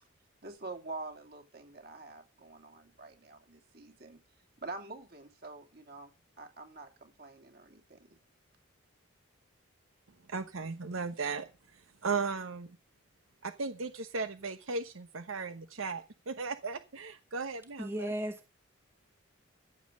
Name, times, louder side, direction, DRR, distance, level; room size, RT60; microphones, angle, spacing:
voice 1, 0.4-4.2 4.6-8.2, right 3 dB, 50° right, 2.8 m, -46 dB
voice 2, 10.3-12.8 13.4-18.1, right 4 dB, 75° right, 1.0 m, -36 dB
voice 3, 17.8-18.5, equal, 10° right, 1.2 m, -35 dB
15.0 x 7.4 x 6.3 m
head